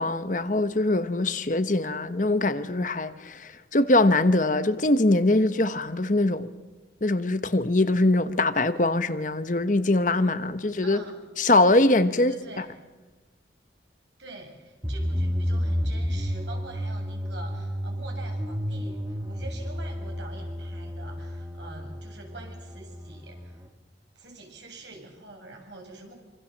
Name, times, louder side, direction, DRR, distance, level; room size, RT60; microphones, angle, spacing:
voice 1, 0.0-6.5 7.0-11.0 11.4-12.3, left 2 dB, 45° left, 1.1 m, -22 dB
voice 2, 10.8-11.1 12.1-12.7 14.2-23.6 24.1-26.1, right 2 dB, 80° right, 7.6 m, -45 dB
sound 1, 14.8-23.7, equal, 15° right, 1.7 m, -31 dB
26.0 x 25.5 x 7.4 m
head